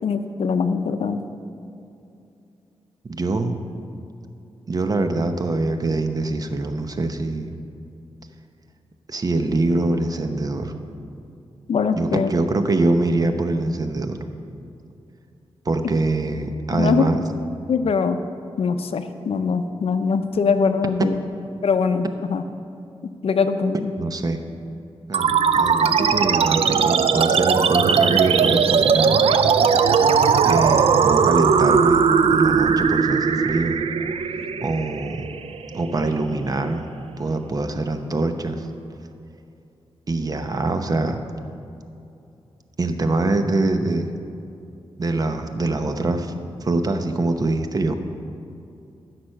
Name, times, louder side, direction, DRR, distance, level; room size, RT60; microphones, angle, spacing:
voice 1, 0.0-1.2 11.7-12.3 16.7-17.1 17.7-18.2 18.6-21.2 21.6-22.4 23.0-23.9, left 5 dB, 75° left, 9 dB, 0.6 m, -22 dB
voice 2, 3.0-3.6 4.7-7.5 9.1-10.7 12.0-14.2 15.7-17.2 24.0-24.4 25.1-29.2 30.4-32.0 32.3-33.8 34.6-35.3 35.7-36.9 37.2-38.7 40.1-41.2 42.8-44.1 45.0-46.3 46.6-47.9, right 2 dB, 40° right, 7 dB, 0.8 m, -24 dB
sound 1, 25.1-36.1, right 6 dB, 75° right, 0.5 m, -18 dB
14.5 x 6.0 x 6.5 m, 2.7 s
wide cardioid pair, 120°, 10 cm